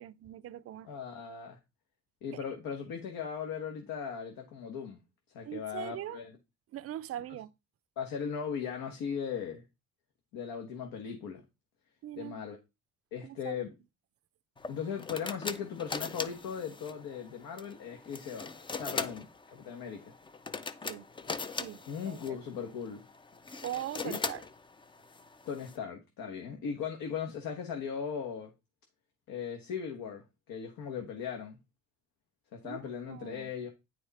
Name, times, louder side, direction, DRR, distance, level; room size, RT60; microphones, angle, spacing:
voice 1, 0.0-0.9 2.3-2.4 5.5-6.2 6.7-7.5 12.0-12.4 13.2-13.6 18.9-19.1 20.8-21.1 21.6-21.8 22.1-22.4 23.6-24.4 32.6-32.8 33.1-33.5, right 12 dB, 45° right, 0.5 m, -41 dB
voice 2, 0.8-1.6 2.2-5.0 5.3-6.3 8.0-9.6 10.3-11.4 12.2-12.6 13.1-13.7 14.7-18.5 18.7-20.1 21.9-23.0 24.0-24.2 25.5-28.5 29.3-31.6 32.5-33.7, left 7 dB, 75° left, 1.5 m, -38 dB
sound 1, 14.6-25.8, left 4 dB, 15° left, 0.4 m, -41 dB
9.4 x 5.0 x 4.1 m
cardioid pair, 155°, 34 cm